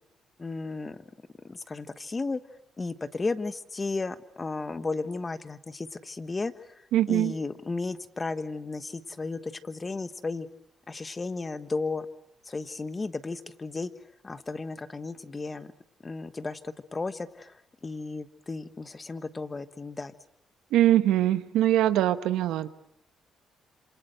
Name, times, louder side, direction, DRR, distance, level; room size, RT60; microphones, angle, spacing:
voice 1, 0.4-1.0 1.4-2.4 2.8-6.5 7.1-10.5 10.9-12.1 12.5-13.9 14.2-15.7 16.0-17.5 17.8-20.1, left 3 dB, 25° left, 13 dB, 1.3 m, -34 dB
voice 2, 6.9-7.3 20.7-22.7, right 13 dB, 90° right, 12 dB, 1.1 m, -22 dB
27.0 x 26.5 x 7.9 m, 0.75 s
cardioid pair, 90°, 0 cm